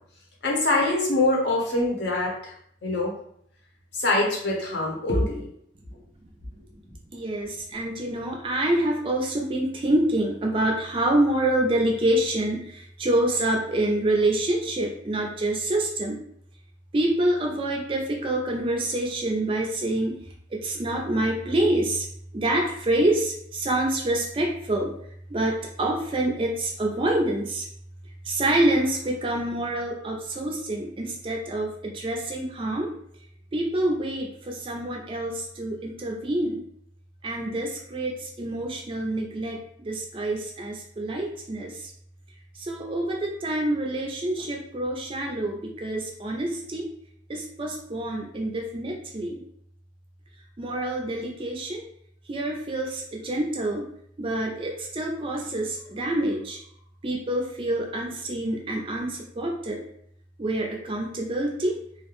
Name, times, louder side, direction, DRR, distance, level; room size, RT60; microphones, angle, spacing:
voice 1, 0.4-2.5 2.8-3.1 3.9-5.5, left 2 dB, 65° left, -2 dB, 0.7 m, -24 dB
voice 2, 7.1-16.2 16.9-20.2 20.5-22.1 22.3-24.9 25.3-27.7 28.2-32.9 33.5-36.6 37.2-41.9 42.6-46.9 47.3-49.4 50.6-51.8 52.3-53.8 54.2-56.6 57.0-59.8 60.4-61.8, right 1 dB, 30° right, 1 dB, 0.3 m, -26 dB
2.4 x 2.1 x 2.9 m, 0.67 s
head